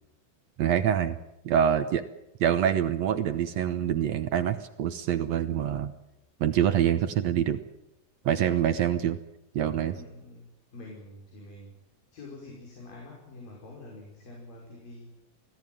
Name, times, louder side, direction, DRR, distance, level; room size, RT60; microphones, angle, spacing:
voice 1, 0.6-1.2 1.5-2.0 2.4-5.9 6.4-7.6 8.3-9.2 9.5-10.0, right 9 dB, 65° right, 10 dB, 1.7 m, -25 dB
voice 2, 9.9-10.5 10.7-11.8 12.1-15.1, left 2 dB, 70° left, -2 dB, 7.0 m, -46 dB
25.5 x 17.5 x 9.3 m, 0.90 s
omnidirectional pair, 4.1 m